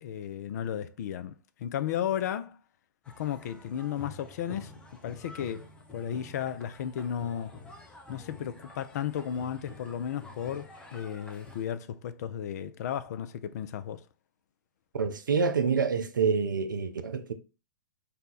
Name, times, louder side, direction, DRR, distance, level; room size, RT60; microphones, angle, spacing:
voice 1, 0.0-2.6 3.2-4.7 5.0-7.6 8.1-14.0, left 9 dB, 55° left, 0.4 m, -34 dB
sound 1, 3.0-11.6, left 3 dB, 10° left, 0.6 m, -49 dB
voice 2, 14.9-17.3, right 5 dB, 80° right, 0.4 m, -27 dB
2.7 x 2.2 x 3.9 m
figure-of-eight pair, 110°, 10 cm